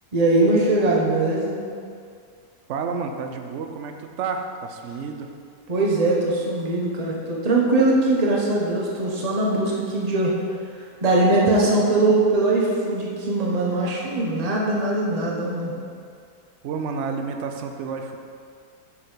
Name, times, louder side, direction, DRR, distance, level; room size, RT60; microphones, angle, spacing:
voice 1, 0.1-1.6 5.7-10.3 11.0-15.7, right 2 dB, 25° right, -3 dB, 1.1 m, -21 dB
voice 2, 2.7-5.3 16.6-18.2, right 5 dB, 60° right, 5 dB, 0.8 m, -30 dB
8.0 x 5.6 x 5.6 m, 2.3 s
omnidirectional pair, 1.9 m